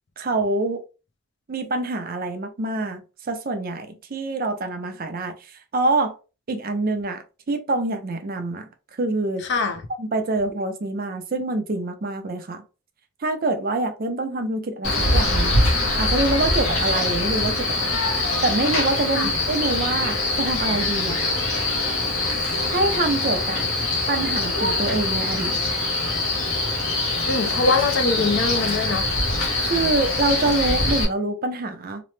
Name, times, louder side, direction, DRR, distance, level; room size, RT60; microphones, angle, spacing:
voice 1, 0.2-0.8 1.5-6.2 6.5-8.7 9.0-9.4 10.0-12.6 13.2-15.6 16.0-18.1 18.4-21.2 22.7-23.6 24.1-25.6 29.6-32.0, right 2 dB, 45° right, 0.5 m, -25 dB
voice 2, 9.4-9.9 19.2-19.3 27.3-29.1, left 4 dB, 55° left, 0.4 m, -23 dB
Male speech man speaking, 14.8-31.0, left 2 dB, 85° left, 1.0 m, -23 dB
2.9 x 2.0 x 3.1 m
head